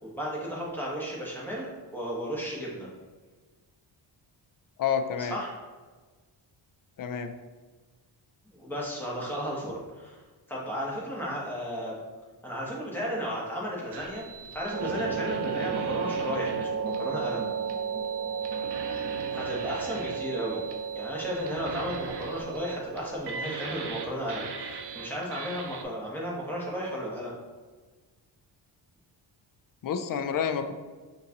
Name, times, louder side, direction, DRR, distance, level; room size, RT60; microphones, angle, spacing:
voice 1, 0.0-2.9 5.2-5.5 8.5-10.2 10.5-12.0 12.4-14.2 14.5-17.5 19.3-20.6 20.9-27.3, equal, 5° left, -5 dB, 1.3 m, -34 dB
voice 2, 4.8-5.4 7.0-7.3 29.8-30.7, left 7 dB, 50° left, 8 dB, 0.4 m, -29 dB
sound 1, 13.9-25.8, right 4 dB, 65° right, 0.6 m, -41 dB
sound 2, 14.7-26.2, right 6 dB, 45° right, 1.2 m, -34 dB
5.6 x 2.7 x 2.9 m, 1.3 s
cardioid pair, 105°, 46 cm